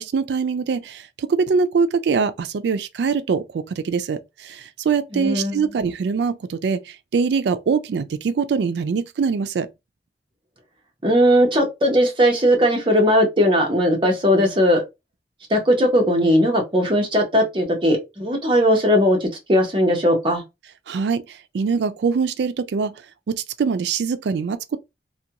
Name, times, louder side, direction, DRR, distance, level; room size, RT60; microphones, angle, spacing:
voice 1, 0.0-6.8 7.1-9.7 20.9-21.2 21.5-22.9 23.3-24.8, right 5 dB, 70° right, 0.3 m, -23 dB
voice 2, 5.1-5.6 11.0-14.8 15.5-20.4, equal, 30° right, 0.8 m, -18 dB
2.4 x 2.2 x 2.8 m
head